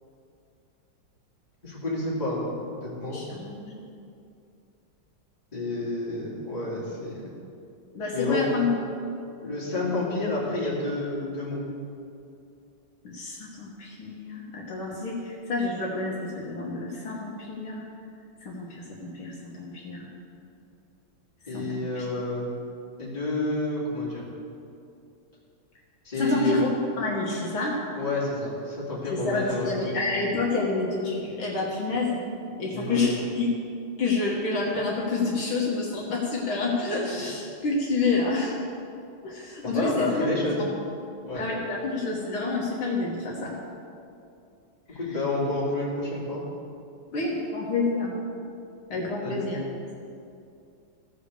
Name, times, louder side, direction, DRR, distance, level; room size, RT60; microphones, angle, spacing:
voice 1, 1.6-3.2 5.5-7.2 8.1-8.5 9.4-11.6 21.5-22.5 23.0-24.2 26.0-26.6 28.0-29.9 32.7-33.1 39.7-40.6 41.3-41.4 44.9-46.4 49.2-49.5, left 2 dB, 20° left, -7 dB, 2.7 m, -29 dB
voice 2, 3.1-3.8 7.9-8.7 13.0-17.8 18.4-20.1 21.5-22.1 26.2-26.7 27.0-27.8 29.1-32.2 32.6-33.5 34.0-38.5 39.2-40.3 40.6-40.7 41.3-43.5 44.9-45.0 47.1-48.2 48.9-49.6, left 3 dB, 65° left, -4 dB, 2.1 m, -28 dB
15.5 x 5.1 x 6.6 m, 2.6 s
omnidirectional pair, 2.4 m